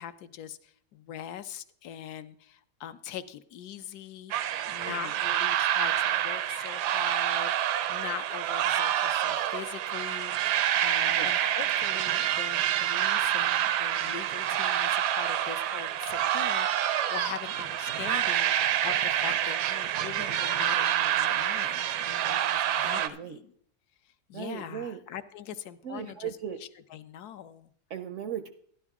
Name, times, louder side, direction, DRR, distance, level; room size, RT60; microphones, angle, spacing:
voice 1, 0.0-4.3 4.7-18.5 18.8-23.5 24.3-26.3 26.9-27.7, left 10 dB, 75° left, 11 dB, 1.1 m, -42 dB
sound 1, 4.3-23.1, right 11 dB, 85° right, 1.2 m, -27 dB
voice 2, 22.8-23.4 24.3-25.0 25.8-26.6 27.9-28.5, right 9 dB, 65° right, 9 dB, 0.7 m, -37 dB
12.0 x 11.0 x 3.5 m, 0.63 s
omnidirectional pair, 1.8 m